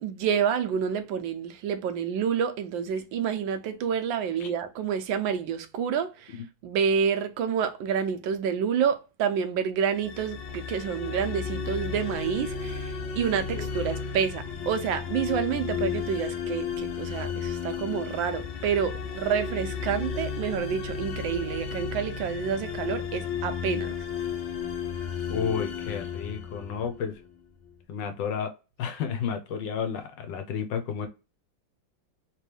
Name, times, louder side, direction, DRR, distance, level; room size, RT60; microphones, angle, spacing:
voice 1, 0.0-23.9, right 7 dB, 80° right, 1.3 m, -28 dB
sound 1, 9.9-27.1, left 6 dB, 55° left, 0.8 m, -33 dB
voice 2, 25.3-27.2 27.9-28.5 28.8-31.1, left 7 dB, 70° left, 1.3 m, -31 dB
3.4 x 3.0 x 3.3 m
omnidirectional pair, 2.1 m